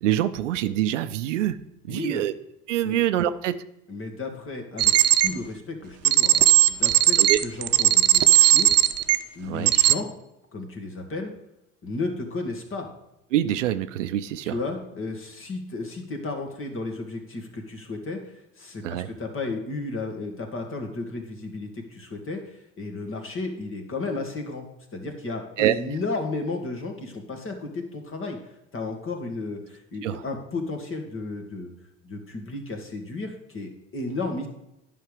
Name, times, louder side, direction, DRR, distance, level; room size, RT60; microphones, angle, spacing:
voice 1, 0.0-1.6 1.9-2.3 2.7-3.6 7.2-7.4 9.4-9.7 13.3-14.6 18.8-19.1 25.6-25.7 30.0-30.2, right 12 dB, 90° right, 13 dB, 0.5 m, -25 dB
voice 2, 1.9-2.3 2.8-3.0 3.9-4.9 5.2-8.8 9.4-10.1 10.5-11.3 11.8-12.9 14.4-24.7 24.9-31.7 32.0-34.5, left 3 dB, 35° left, 4 dB, 2.1 m, -33 dB
sound 1, 4.8-5.3 6.0-9.2 9.7-9.9, right 14 dB, 45° right, 0.6 m, -17 dB
9.9 x 5.8 x 5.0 m, 0.86 s
hypercardioid pair, 70°, 36 cm